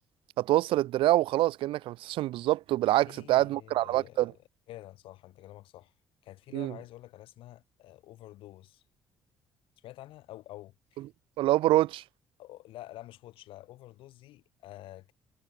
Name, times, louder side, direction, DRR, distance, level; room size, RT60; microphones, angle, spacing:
voice 1, 0.4-4.3 6.5-6.7 11.4-12.0, right 16 dB, 60° right, 1.6 m, -26 dB
voice 2, 3.1-4.3 4.7-5.9 6.2-8.8 9.8-11.0 12.4-15.1, left 15 dB, 60° left, 5.3 m, -48 dB
figure-of-eight pair, 45°, 10 cm